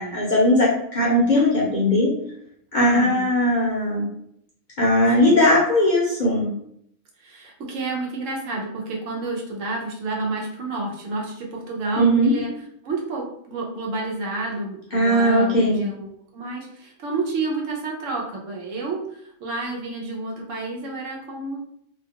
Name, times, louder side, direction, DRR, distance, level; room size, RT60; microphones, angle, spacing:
voice 1, 0.0-2.1 2.7-4.1 4.8-6.5 12.0-12.3 14.9-15.8, left 1 dB, 45° left, -7 dB, 0.7 m, -19 dB
voice 2, 2.9-3.3 5.2-5.4 7.2-12.5 12.8-16.1 16.3-21.6, right 3 dB, 70° right, -1 dB, 1.0 m, -30 dB
2.7 x 2.3 x 2.8 m, 0.71 s
omnidirectional pair, 1.5 m